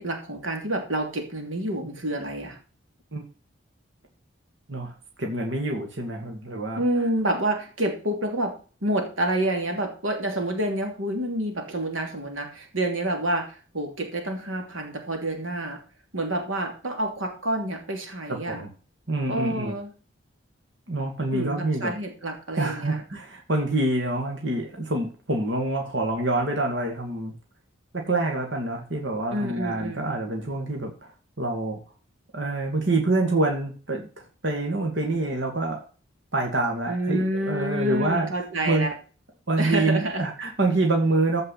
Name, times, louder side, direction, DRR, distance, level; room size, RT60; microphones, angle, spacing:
voice 1, 0.0-2.6 6.8-8.5 8.8-15.8 16.1-18.6 19.3-19.9 21.3-23.0 29.3-30.2 36.9-38.9 39.6-40.3, right 1 dB, 90° right, 4 dB, 2.8 m, -28 dB
voice 2, 4.7-6.8 18.5-18.7 19.1-19.8 20.9-21.9 22.6-27.3 27.9-31.1 31.4-31.8 32.3-34.1 34.4-35.8 36.3-38.3 38.6-38.9 39.5-41.4, right 2 dB, 65° right, 1 dB, 2.4 m, -26 dB
14.5 x 5.4 x 5.9 m, 0.38 s
head